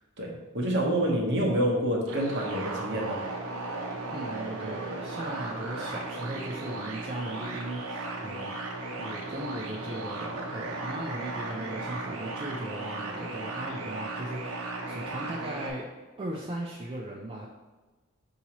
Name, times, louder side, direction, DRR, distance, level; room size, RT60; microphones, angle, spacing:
voice 1, 0.2-3.2, right 1 dB, 55° right, -2 dB, 0.8 m, -27 dB
sound 1, 2.1-15.7, right 2 dB, 75° right, 0.6 m, -36 dB
voice 2, 4.1-15.9 16.2-17.5, right 1 dB, 25° right, -3 dB, 0.3 m, -38 dB
5.7 x 2.7 x 2.8 m, 1.3 s
head